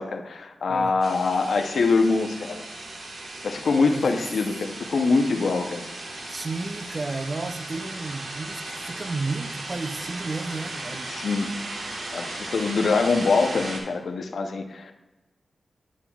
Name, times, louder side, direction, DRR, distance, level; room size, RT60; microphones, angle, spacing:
voice 1, 0.0-2.6 3.4-5.9 11.1-11.5 12.1-14.9, left 4 dB, 70° left, 5 dB, 0.6 m, -24 dB
sound 1, 1.0-13.8, right 2 dB, 70° right, 1.3 m, -36 dB
voice 2, 6.3-11.1 12.0-12.1, right 3 dB, 30° right, 9 dB, 0.4 m, -32 dB
8.7 x 7.2 x 2.3 m, 1.1 s
wide cardioid pair, 155°, 0 cm